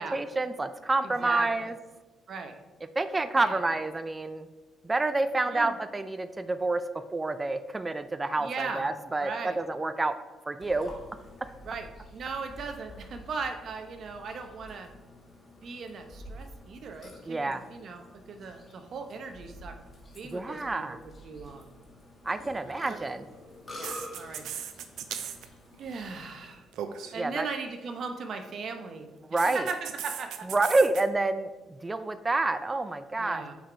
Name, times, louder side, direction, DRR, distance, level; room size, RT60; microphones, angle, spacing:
voice 1, 0.0-1.8 3.0-4.5 4.8-10.2 10.5-10.9 17.3-17.6 20.2-21.0 22.2-23.3 27.2-27.5 29.3-29.7 30.5-33.4, right 2 dB, 20° right, 11 dB, 0.4 m, -28 dB
voice 2, 1.0-1.7 2.3-2.5 3.4-3.6 5.5-5.8 8.4-8.9 9.2-9.6 11.6-14.9 15.6-19.8 20.1-20.8 21.2-21.7 22.6-23.0 23.7-24.4 25.8-26.6 27.1-29.1 29.5-30.5 33.2-33.5, right 4 dB, 60° right, 6 dB, 1.0 m, -38 dB
Burping eructation, 10.6-26.5, left 1 dB, 35° left, 2.3 m, -48 dB
sound 1, 22.7-22.9 23.8-25.5 25.7-26.1 26.7-27.1 29.4-31.0, right 9 dB, 80° right, 0.7 m, -37 dB
7.9 x 5.0 x 4.6 m, 1.2 s
cardioid pair, 90°, 0 cm